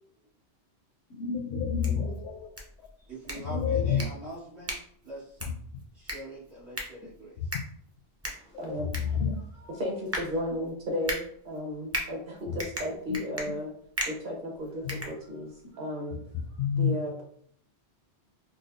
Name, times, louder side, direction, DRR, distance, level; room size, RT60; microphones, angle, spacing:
voice 1, 1.1-2.5 3.3-4.0 8.5-9.4 10.5-10.6 12.5-12.6 13.1-13.2 14.8-15.0 16.6-16.9, left 7 dB, 85° left, 0.9 m, -29 dB
sound 1, 1.6-15.7, equal, 20° right, 0.5 m, -39 dB
voice 2, 3.0-4.8 5.0-5.5 5.9-7.4, right 1 dB, 75° right, 1.9 m, -43 dB
voice 3, 8.3-8.9 9.6-11.2 11.4-13.7 14.0-16.2 16.8-17.2, left 1 dB, 50° right, 1.1 m, -34 dB
5.0 x 2.1 x 2.5 m
omnidirectional pair, 1.1 m